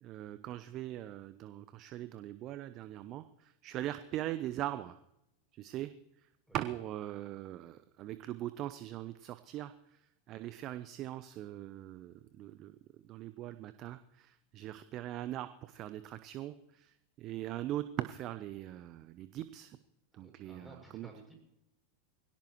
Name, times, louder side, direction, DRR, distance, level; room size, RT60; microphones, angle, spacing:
voice 1, 0.0-5.0 5.5-5.9 6.2-6.3 6.5-12.8 13.0-19.8 20.1-21.1, right 13 dB, 45° right, 12 dB, 0.7 m, -41 dB
voice 2, 20.1-21.4, right 2 dB, ahead, 0 dB, 7.0 m, -55 dB
22.5 x 17.5 x 3.1 m, 0.84 s
hypercardioid pair, 90°, 0 cm